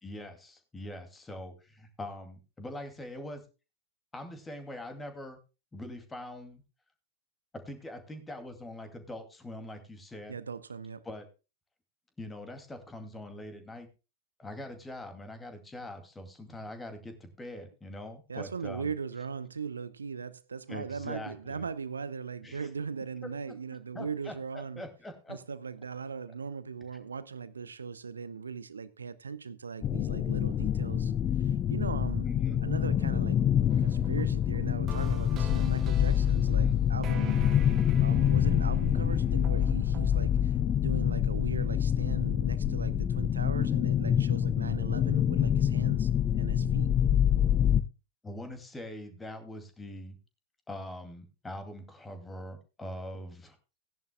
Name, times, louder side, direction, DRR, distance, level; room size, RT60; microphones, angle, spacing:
voice 1, 0.0-3.4 4.1-5.4 5.7-6.6 7.5-10.4 11.0-11.3 12.2-13.9 14.4-18.9 20.7-21.7 22.4-22.7 23.2-23.6 23.9-25.4 32.2-32.6 36.6-36.8 48.2-50.2 50.7-53.6, left 1 dB, 10° left, 2.3 m, -43 dB
voice 2, 10.3-11.0 18.3-24.8 25.3-31.1 31.4-32.3 32.6-33.4 33.8-37.5 38.0-46.1 46.4-46.9, right 5 dB, 75° right, 0.7 m, -39 dB
sound 1, 29.8-47.8, left 9 dB, 30° left, 0.6 m, -26 dB
sound 2, 33.7-40.6, right 6 dB, 30° right, 1.8 m, -47 dB
17.5 x 10.5 x 2.2 m
figure-of-eight pair, 90°, 0 cm